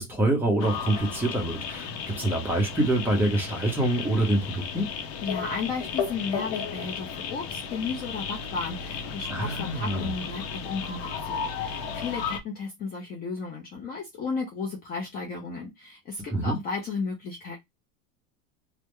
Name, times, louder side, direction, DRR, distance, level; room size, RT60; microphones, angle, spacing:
voice 1, 0.0-4.9 9.3-10.1 16.3-16.6, right 1 dB, 5° right, 0.8 m, -26 dB
sound 1, 0.6-12.4, left 6 dB, 55° left, 0.8 m, -34 dB
voice 2, 5.2-17.6, left 4 dB, 25° left, 0.5 m, -34 dB
3.5 x 2.1 x 3.1 m
supercardioid pair, 155°, 41 cm